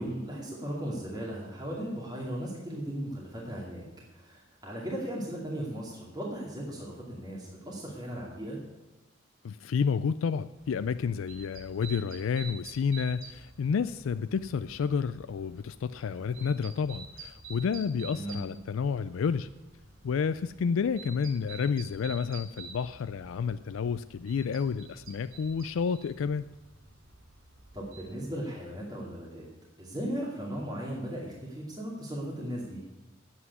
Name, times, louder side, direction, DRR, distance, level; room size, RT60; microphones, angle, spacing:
voice 1, 0.0-3.8 4.1-8.6 18.1-18.5 27.7-29.5 29.8-32.8, right 1 dB, 20° right, -5 dB, 2.4 m, -37 dB
voice 2, 9.4-19.5 20.0-26.5, left 6 dB, 85° left, 13 dB, 0.4 m, -30 dB
sound 1, 10.6-28.1, right 4 dB, 85° right, 1.9 m, -49 dB
9.5 x 8.3 x 9.5 m, 1.1 s
head